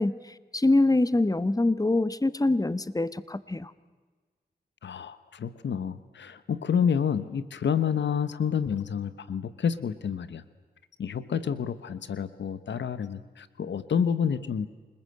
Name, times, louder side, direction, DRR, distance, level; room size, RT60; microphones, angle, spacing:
voice 1, 0.0-3.7, left 2 dB, 20° left, 15 dB, 1.3 m, -24 dB
voice 2, 4.8-10.4 11.0-14.7, left 7 dB, 90° left, 14 dB, 1.1 m, -29 dB
28.0 x 20.0 x 7.9 m, 1.4 s
cardioid pair, 45°, 18 cm